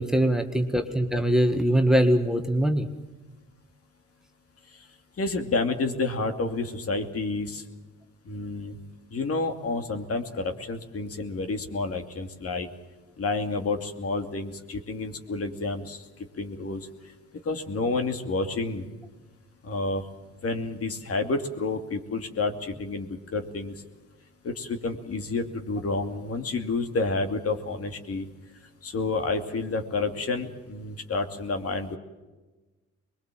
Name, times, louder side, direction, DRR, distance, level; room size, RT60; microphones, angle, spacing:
voice 1, 0.0-2.9, equal, ahead, 6 dB, 1.7 m, -22 dB
voice 2, 5.2-7.6 8.2-8.8 9.1-12.7 13.2-16.0 16.4-16.9 17.4-18.9 19.6-20.1 20.4-23.8 24.4-28.3 28.8-32.0, left 3 dB, 50° left, 5 dB, 2.7 m, -29 dB
23.5 x 21.5 x 7.6 m, 1.2 s
cardioid pair, 90°, 30 cm